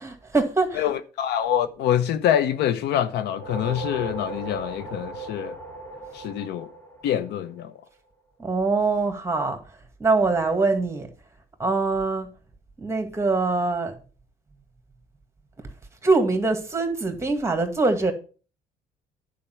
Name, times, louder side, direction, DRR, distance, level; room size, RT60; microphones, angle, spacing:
voice 1, 0.0-0.8 8.4-9.6 10.0-11.1 11.6-12.3 12.8-14.0 16.0-18.1, right 3 dB, 15° right, 2.0 m, -23 dB
voice 2, 0.7-5.6 6.1-6.7 7.0-7.7, left 10 dB, 80° left, 0.9 m, -25 dB
sound 1, 3.2-7.7, right 3 dB, 15° left, 3.4 m, -37 dB
10.0 x 5.2 x 5.9 m
cardioid pair, 110°, 17 cm